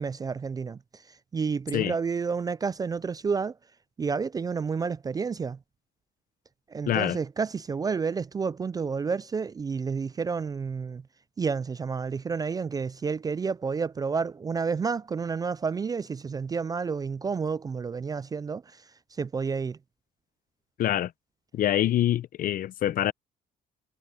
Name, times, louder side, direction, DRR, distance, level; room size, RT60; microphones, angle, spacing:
voice 1, 0.0-3.6 4.0-5.6 6.7-11.0 11.4-18.8 19.2-19.8, right 5 dB, 20° right, 0.3 m, -30 dB
voice 2, 6.9-7.2 20.8-21.1 21.5-23.1, left 12 dB, 55° left, 0.8 m, -25 dB
cardioid pair, 110°, 17 cm